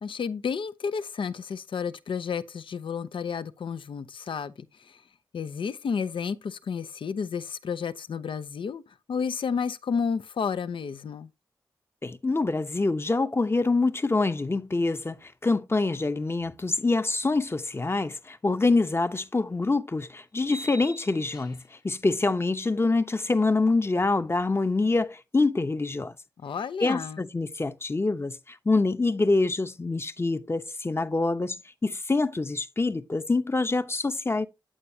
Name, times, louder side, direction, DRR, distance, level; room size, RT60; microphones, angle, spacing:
voice 1, 0.0-5.0 5.3-11.3 26.4-27.2, left 6 dB, 75° left, 0.6 m, -31 dB
voice 2, 12.0-26.1 26.8-31.6 31.8-34.5, left 3 dB, 30° left, 0.8 m, -25 dB
sound 1, 20.4-21.8, right 1 dB, 45° left, 1.1 m, -44 dB
8.8 x 8.7 x 2.7 m
cardioid pair, 55°, 9 cm